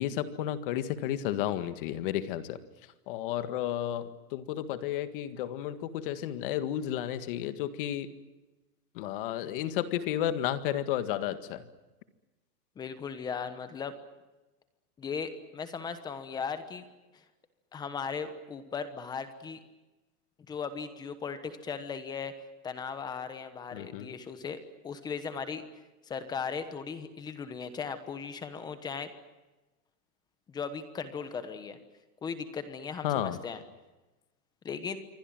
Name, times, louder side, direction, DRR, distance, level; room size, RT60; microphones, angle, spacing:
voice 1, 0.0-2.6 3.1-8.1 9.0-11.6 23.7-24.1 33.0-33.4, left 11 dB, 35° left, 11 dB, 1.8 m, -32 dB
voice 2, 12.8-14.0 15.0-16.9 17.1-17.2 17.7-19.6 20.5-22.3 22.6-24.6 24.8-25.6 26.0-29.1 30.5-31.8 32.2-33.6 34.6-35.0, left 6 dB, 10° left, 11 dB, 1.1 m, -37 dB
27.5 x 24.5 x 7.7 m, 1.1 s
supercardioid pair, 175°, 47 cm